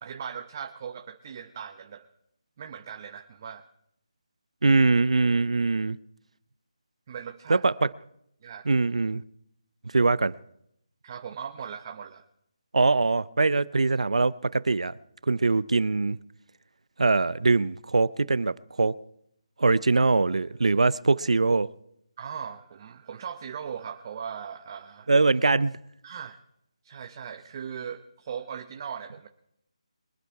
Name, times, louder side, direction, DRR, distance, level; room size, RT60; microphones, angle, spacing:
voice 1, 0.0-2.1 2.6-3.7 7.1-7.6 8.4-8.7 11.0-12.3 22.2-25.1 26.0-26.4 26.8-29.3, right 7 dB, 30° right, 0.8 m, -39 dB
voice 2, 4.6-6.0 7.5-7.7 8.7-9.2 9.9-10.3 12.7-15.0 15.3-16.2 17.0-18.9 19.6-21.7 25.1-25.8, right 3 dB, 85° right, 0.5 m, -22 dB
23.0 x 8.2 x 4.7 m
figure-of-eight pair, 165°, 3 cm